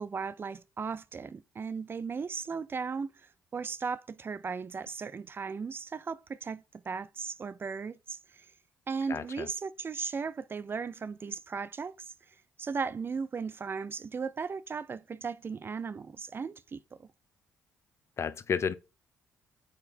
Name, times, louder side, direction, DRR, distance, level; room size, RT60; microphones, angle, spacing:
voice 1, 0.0-8.5 8.9-17.1, right 5 dB, 35° right, 0.4 m, -37 dB
voice 2, 9.1-9.5 18.2-18.7, left 6 dB, 45° left, 0.5 m, -31 dB
5.0 x 4.3 x 2.4 m
hypercardioid pair, 50°, 6 cm